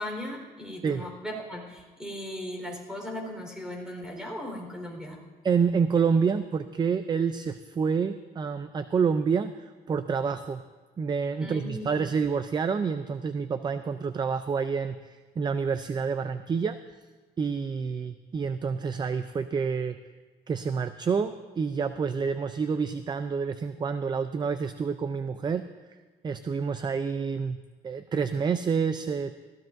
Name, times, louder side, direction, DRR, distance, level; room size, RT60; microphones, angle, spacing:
voice 1, 0.0-5.2 11.4-12.0, left 1 dB, 5° right, 0 dB, 4.1 m, -37 dB
voice 2, 5.4-10.6 11.0-15.0 15.4-16.8 17.4-20.0 20.5-25.7 26.2-27.6 27.8-29.3, right 5 dB, 25° right, 11 dB, 0.4 m, -28 dB
20.0 x 16.0 x 2.6 m, 1.4 s
cardioid pair, 110°, 17 cm